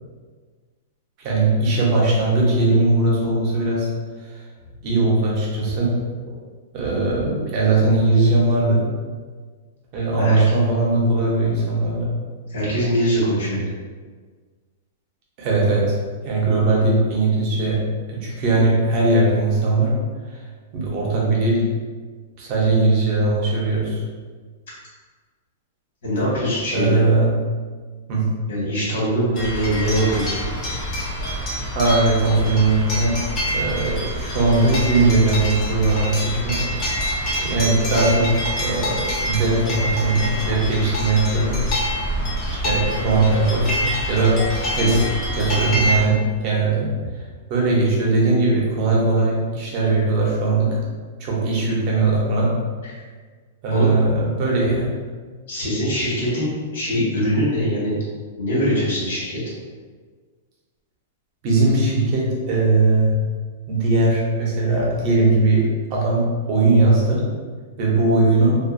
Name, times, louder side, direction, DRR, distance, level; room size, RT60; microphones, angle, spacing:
voice 1, 1.2-3.9 4.3-4.4 4.8-5.9 6.3-6.4 6.7-8.8 9.9-12.1 15.4-16.0 16.2-17.8 18.1-19.9 20.3-20.4 20.7-21.7 22.4-24.0 26.7-27.3 28.1-28.2 31.7-33.2 33.5-36.6 37.4-41.6 42.5-44.4 44.7-45.0 45.4-46.2 46.4-46.9 47.1-47.2 47.5-50.8 51.2-52.5 53.6-55.0 61.4-63.2 63.7-67.2 67.8-68.6, right 2 dB, 30° right, -4 dB, 0.6 m, -19 dB
voice 2, 12.5-13.7 26.0-27.0 28.5-30.3 44.8-45.0 52.8-53.0 53.7-53.9 55.5-58.0 58.4-59.4, equal, 80° left, -7 dB, 1.1 m, -22 dB
sound 1, 29.3-46.1, equal, 25° left, 0.6 m, -26 dB
2.6 x 2.3 x 2.5 m, 1.5 s
supercardioid pair, 175°, 0 cm